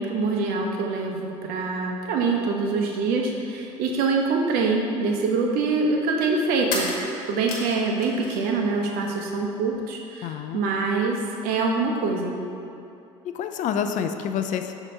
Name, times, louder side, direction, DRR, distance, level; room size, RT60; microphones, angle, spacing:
voice 1, 0.0-6.9 7.3-11.2 11.4-12.4, right 4 dB, 65° right, 1 dB, 0.8 m, -25 dB
sound 1, 6.6-8.6 8.9-9.7, left 3 dB, 70° left, 1.2 m, -34 dB
voice 2, 10.2-10.6 13.3-14.7, left 8 dB, 50° left, 7 dB, 0.4 m, -28 dB
6.4 x 2.9 x 5.4 m, 2.7 s
hypercardioid pair, 70°, 17 cm